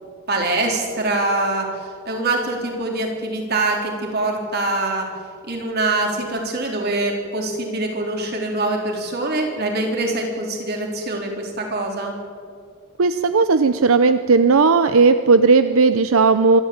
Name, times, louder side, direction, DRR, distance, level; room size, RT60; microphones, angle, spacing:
voice 1, 0.3-1.7 2.1-5.1 5.4-12.1, right 2 dB, 50° right, 1 dB, 4.0 m, -24 dB
voice 2, 13.0-16.6, right 4 dB, 80° right, 11 dB, 0.6 m, -15 dB
25.5 x 12.5 x 8.7 m, 2.1 s
head